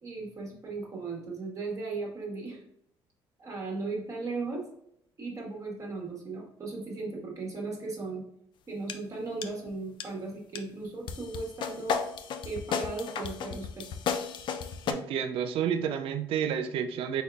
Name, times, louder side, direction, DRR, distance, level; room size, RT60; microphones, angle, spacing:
voice 1, 0.0-2.6 3.4-4.6 5.2-8.2 8.7-12.0 12.4-14.0, right 3 dB, 35° right, -2 dB, 1.3 m, -37 dB
sound 1, 8.9-9.0 9.4-9.7 10.0-10.1 10.5-10.6 11.1-14.9, left 6 dB, 55° left, 0.4 m, -33 dB
voice 2, 14.9-17.2, right 8 dB, 70° right, 7 dB, 0.4 m, -30 dB
4.1 x 3.6 x 2.3 m, 0.74 s
cardioid pair, 115°, 10 cm